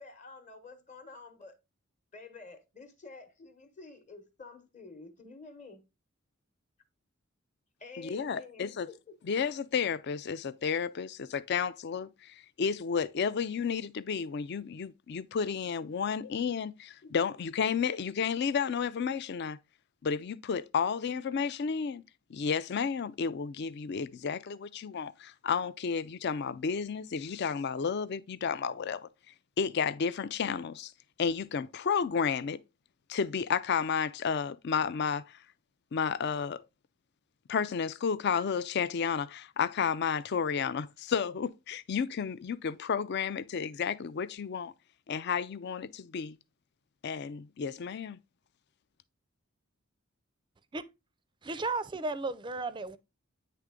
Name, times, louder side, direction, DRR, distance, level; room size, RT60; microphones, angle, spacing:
voice 1, 0.0-1.6 2.1-5.8 7.8-9.1 17.0-17.1, left 3 dB, 35° left, 1.0 m, -50 dB
voice 2, 8.0-8.9 9.3-19.6 20.0-22.0 22.3-29.1 29.6-30.9 31.2-32.6 33.1-35.4 35.9-36.6 37.5-44.7 45.1-46.4 47.0-48.2, left 6 dB, 50° left, 0.4 m, -32 dB
voice 3, 51.4-53.0, right 3 dB, 20° right, 0.4 m, -34 dB
9.4 x 3.3 x 3.7 m
head